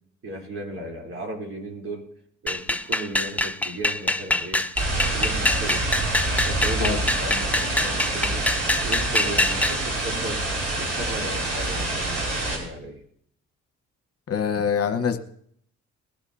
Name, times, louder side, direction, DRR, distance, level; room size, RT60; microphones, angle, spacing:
voice 1, 0.2-2.1 2.4-4.7 5.1-8.5 8.8-10.5 10.8-12.2 12.5-13.0, right 1 dB, 45° right, 1 dB, 3.6 m, -36 dB
sound 1, 2.5-9.8, left 1 dB, 5° left, 0.5 m, -25 dB
sound 2, 4.7-12.6, right 2 dB, 90° right, 4.9 m, -26 dB
voice 2, 14.3-15.2, left 7 dB, 50° left, 7 dB, 1.2 m, -24 dB
21.0 x 12.0 x 2.8 m, 0.65 s
cardioid pair, 90°, 30 cm